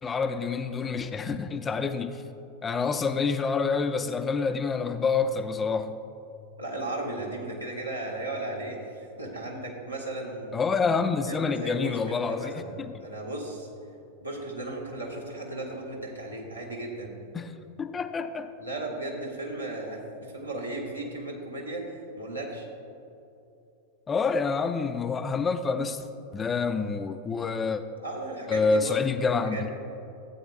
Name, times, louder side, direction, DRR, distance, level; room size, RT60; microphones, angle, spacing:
voice 1, 0.0-2.2 2.6-6.0 10.5-12.5 12.8-12.9 17.3-17.5 17.8-18.5 24.1-26.0 26.3-27.8 28.5-29.7, left 5 dB, 20° left, 9 dB, 0.4 m, -27 dB
voice 2, 6.6-10.6 11.3-13.7 14.2-17.1 18.6-22.7 28.0-29.0 29.4-29.7, right 2 dB, 85° right, -3 dB, 1.6 m, -35 dB
14.0 x 8.6 x 2.5 m, 2.7 s
figure-of-eight pair, 90°, 0 cm